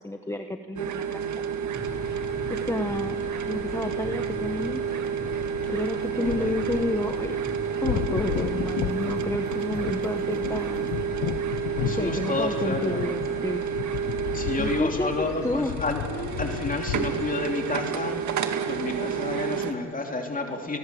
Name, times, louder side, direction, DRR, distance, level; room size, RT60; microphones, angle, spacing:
voice 1, 0.0-1.4 2.5-4.9 5.7-7.4 7.8-10.9 11.4-13.6 14.6-15.8, left 2 dB, 10° left, 6 dB, 1.2 m, -31 dB
sound 1, 0.8-19.7, right 7 dB, 70° right, 2.0 m, -30 dB
sound 2, 1.7-11.3, right 1 dB, 35° right, 7.9 m, -43 dB
sound 3, 1.8-17.3, left 13 dB, 85° left, 0.8 m, -35 dB
voice 2, 6.2-6.5 11.8-13.1 14.3-16.0 16.4-20.8, left 2 dB, 25° left, 3 dB, 3.1 m, -30 dB
29.0 x 20.5 x 7.8 m, 2.8 s
cardioid pair, 90°, 30 cm